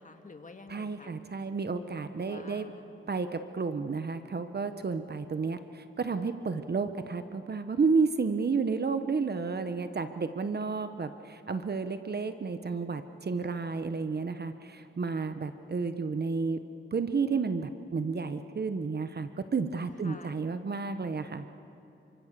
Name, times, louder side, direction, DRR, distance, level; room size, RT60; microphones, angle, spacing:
voice 1, 0.0-1.2 2.2-3.1 20.0-20.4, left 3 dB, 40° left, 6 dB, 2.1 m, -49 dB
voice 2, 0.7-2.7 3.1-16.6 16.9-21.5, right 4 dB, 50° right, 9 dB, 1.1 m, -31 dB
29.0 x 25.0 x 6.9 m, 2.8 s
wide cardioid pair, 85°, 21 cm